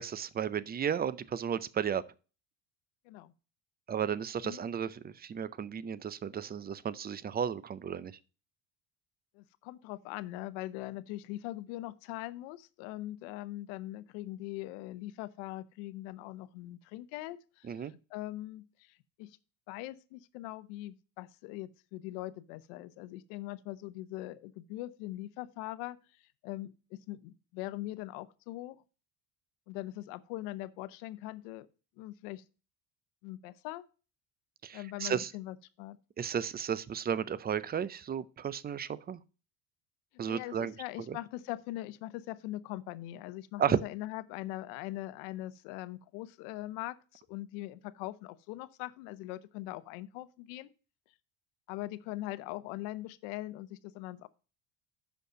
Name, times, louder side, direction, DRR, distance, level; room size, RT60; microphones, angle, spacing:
voice 1, 0.0-2.0 3.9-8.1 17.7-17.9 34.6-35.3 36.2-39.2 40.2-40.7 41.1-41.2 43.6-43.8, right 8 dB, 20° right, 0.4 m, -33 dB
voice 2, 9.3-19.4 19.7-26.0 26.4-28.8 29.7-31.7 32.0-32.4 33.2-33.8 34.7-36.0 40.3-50.7 51.7-54.3, left 16 dB, 80° left, 0.8 m, -41 dB
6.6 x 5.4 x 6.3 m
supercardioid pair, 100°, 46 cm